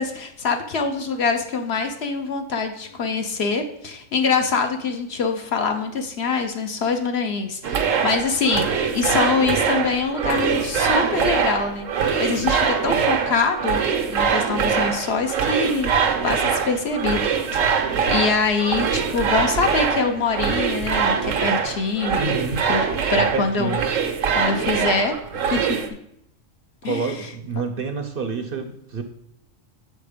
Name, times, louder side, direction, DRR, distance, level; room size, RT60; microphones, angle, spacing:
voice 1, 0.0-8.7 8.9-13.8 14.1-15.9 16.2-17.2 17.5-22.4 22.7-23.8 24.4-25.6 26.8-27.3, left 4 dB, 60° left, 5 dB, 1.0 m, -24 dB
sound 1, 7.6-25.9, right 6 dB, 85° right, 1.1 m, -23 dB
voice 2, 22.2-22.7 23.2-23.8 26.8-29.0, right 4 dB, 55° right, 6 dB, 0.7 m, -28 dB
7.4 x 4.3 x 5.1 m, 0.76 s
omnidirectional pair, 1.3 m